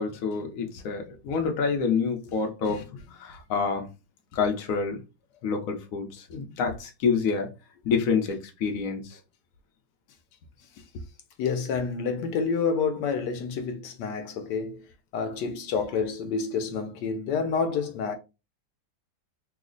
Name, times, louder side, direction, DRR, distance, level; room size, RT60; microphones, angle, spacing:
voice 1, 0.0-2.8 3.1-3.9 4.3-5.0 5.4-7.5 7.8-9.2, left 5 dB, 60° left, 1.0 m, -27 dB
voice 2, 2.6-3.0 10.8-11.0 11.4-14.9 15.1-18.1, left 5 dB, 80° left, 1.2 m, -29 dB
3.1 x 2.0 x 3.7 m
omnidirectional pair, 1.8 m